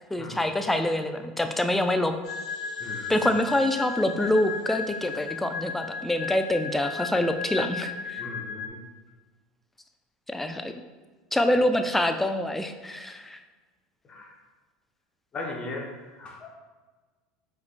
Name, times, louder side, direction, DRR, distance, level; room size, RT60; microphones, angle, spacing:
voice 1, 0.1-2.2 3.1-8.2 10.3-10.7 11.3-13.4, left 1 dB, 5° left, 7 dB, 0.3 m, -26 dB
sound 1, 2.2-8.7, left 5 dB, 90° left, 1.0 m, -35 dB
voice 2, 2.8-3.3 8.2-8.8 14.1-14.3 15.3-16.6, left 2 dB, 30° left, -1 dB, 0.8 m, -38 dB
4.9 x 3.4 x 2.5 m, 1.3 s
hypercardioid pair, 100°, 3 cm